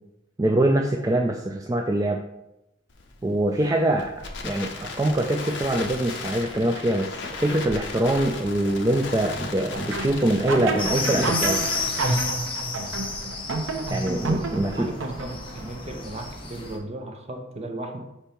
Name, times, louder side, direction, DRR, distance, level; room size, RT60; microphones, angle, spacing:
voice 1, 0.4-2.2 3.2-4.1 4.4-11.6 13.9-14.9, right 1 dB, 20° right, 2 dB, 0.3 m, -24 dB
Crackle, 2.9-12.1, left 4 dB, 65° left, 0.8 m, -36 dB
sound 1, 9.7-15.6, right 2 dB, 85° right, 0.7 m, -29 dB
sound 2, 10.8-16.8, left 3 dB, 25° left, 1.0 m, -32 dB
voice 2, 14.5-18.0, right 1 dB, 35° right, 3 dB, 0.8 m, -36 dB
5.3 x 4.6 x 4.3 m, 0.91 s
head